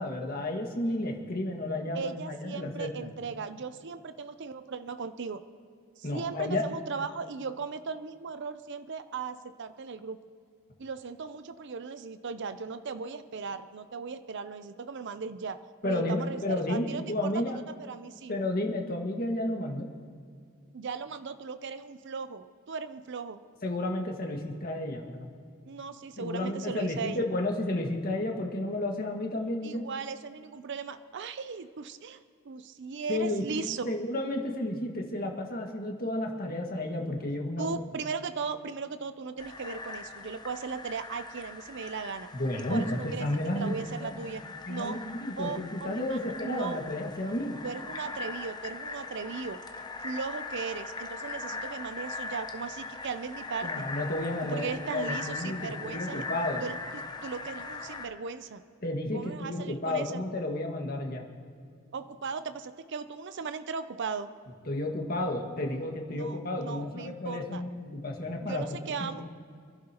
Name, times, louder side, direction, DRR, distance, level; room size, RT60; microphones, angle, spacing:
voice 1, 0.0-2.9 6.0-6.6 15.8-17.6 18.3-19.9 23.6-25.3 26.2-29.8 33.1-37.7 42.3-43.7 44.0-44.1 44.7-47.6 53.6-56.6 58.8-61.2 64.7-68.6 69.0-69.3, left 1 dB, 45° left, 1 dB, 1.8 m, -32 dB
voice 2, 1.9-5.4 6.0-10.2 10.8-15.6 15.8-18.3 20.7-23.4 25.7-27.3 29.6-33.8 37.6-42.3 42.7-43.3 43.5-44.4 44.7-45.0 45.4-46.8 47.6-49.6 50.0-53.9 54.5-56.2 56.6-58.6 59.1-60.2 61.9-64.3 66.1-67.6 68.4-69.3, right 5 dB, 55° right, 11 dB, 0.5 m, -37 dB
sound 1, 39.4-58.1, left 3 dB, 20° left, 0.9 m, -40 dB
26.5 x 11.5 x 2.9 m, 2.2 s
head